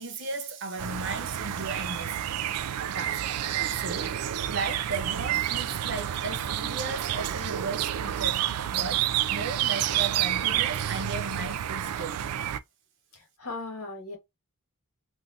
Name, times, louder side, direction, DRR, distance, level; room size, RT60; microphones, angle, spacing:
voice 1, 0.0-4.2 4.5-12.2, right 3 dB, 55° right, 1.0 m, -36 dB
sound 1, 0.8-12.6, right 11 dB, 85° right, 0.4 m, -29 dB
voice 2, 13.1-14.2, left 3 dB, 75° left, 1.9 m, -38 dB
3.7 x 2.6 x 2.6 m
head